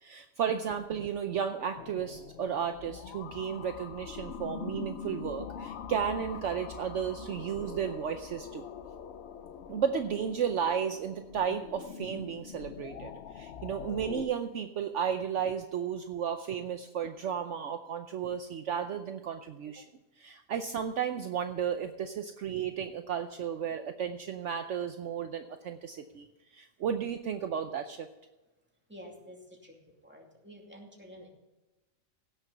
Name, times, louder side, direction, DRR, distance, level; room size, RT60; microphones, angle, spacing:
voice 1, 0.0-8.6 9.7-19.9 20.2-26.3 26.5-28.1, right 8 dB, 65° right, 7 dB, 1.0 m, -33 dB
sound 1, 1.8-14.3, left 7 dB, 60° left, 0.8 m, -43 dB
voice 2, 28.9-29.8 30.0-31.3, equal, 10° right, 0 dB, 2.5 m, -50 dB
16.5 x 6.9 x 5.6 m, 1.1 s
omnidirectional pair, 1.4 m